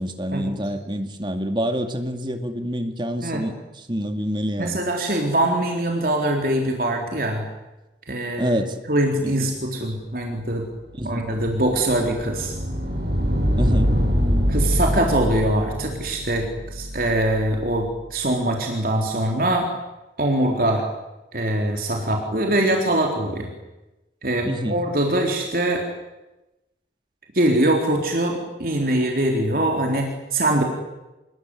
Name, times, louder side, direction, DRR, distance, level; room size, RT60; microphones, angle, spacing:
voice 1, 0.0-4.8 8.4-8.8 9.4-9.5 11.0-11.2 13.6-13.9 22.5-22.6 24.4-24.8, equal, 25° right, 7 dB, 2.2 m, -27 dB
voice 2, 4.6-7.5 8.1-8.6 8.9-10.6 11.0-12.5 14.5-19.7 20.2-20.9 21.3-23.5 24.2-25.9 27.3-30.6, right 1 dB, 55° right, 1 dB, 3.9 m, -23 dB
sound 1, 11.0-17.8, equal, 70° right, 5.9 m, -24 dB
27.0 x 21.5 x 9.9 m, 1.0 s
head